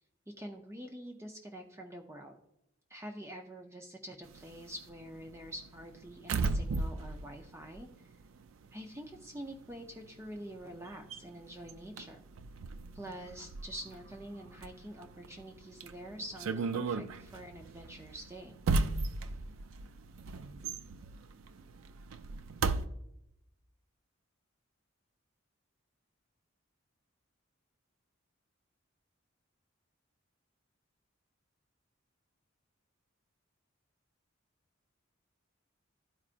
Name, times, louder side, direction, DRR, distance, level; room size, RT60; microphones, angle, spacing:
voice 1, 0.3-2.4 2.9-7.9 8.7-12.2 12.9-18.6, equal, 15° right, 2 dB, 0.5 m, -46 dB
sound 1, 4.3-8.7 8.9-22.9, right 3 dB, 75° right, 0.4 m, -37 dB
12.0 x 4.8 x 2.5 m, 0.82 s
head